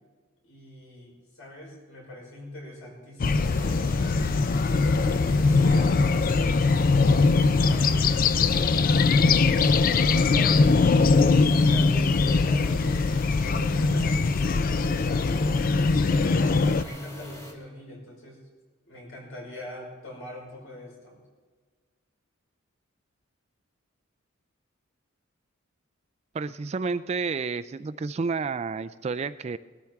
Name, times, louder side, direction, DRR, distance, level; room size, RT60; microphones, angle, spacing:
voice 1, 0.4-3.6 3.9-4.6 5.2-6.8 7.1-8.8 9.4-13.0 13.4-15.6 15.9-18.4 18.9-21.2, left 1 dB, 70° left, -3 dB, 5.6 m, -42 dB
sound 1, 3.2-16.8, left 4 dB, 40° left, 0.4 m, -21 dB
sound 2, 3.2-17.5, equal, 15° left, 1.4 m, -43 dB
voice 2, 26.3-29.6, right 4 dB, 30° right, 12 dB, 0.3 m, -30 dB
20.0 x 13.5 x 3.5 m, 1.5 s
head